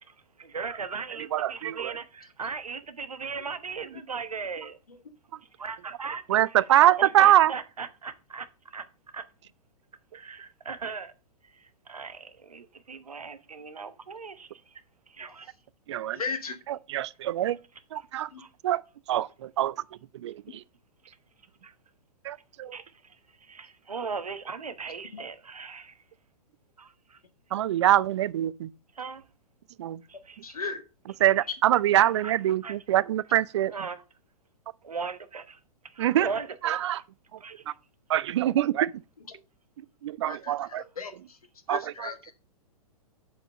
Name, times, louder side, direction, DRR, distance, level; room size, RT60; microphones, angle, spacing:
voice 1, 0.4-4.8 5.6-6.3 7.0-8.8 9.1-9.2 10.1-11.1 11.5-14.8 15.1-15.5 18.4-18.5 21.6-21.7 22.7-26.0 26.8-27.2 29.0-29.2 30.1-30.6 32.2-32.3 32.6-32.7 33.7-34.0 34.8-35.6 35.9-36.8 37.4-37.6, right 5 dB, 75° right, 1.2 m, -38 dB
voice 2, 1.3-2.0 5.3-5.4 6.3-7.5 15.9-16.2 16.7-17.6 17.9-18.3 18.6-18.8 19.1-19.7 20.1-20.6 22.2-22.8 27.5-28.7 29.8-30.0 31.2-33.7 36.0-36.3 36.6-37.0 37.3-37.4 37.7-37.8 38.1-39.0 39.8-40.8 41.7-42.1, right 13 dB, 45° right, 0.5 m, -24 dB
voice 3, 16.1-16.6 18.3-18.4 25.1-25.2 30.4-30.8 39.3-39.4 40.3-41.4 41.7-42.3, left 4 dB, 70° left, 1.5 m, -36 dB
7.3 x 5.3 x 6.2 m
figure-of-eight pair, 110°, 19 cm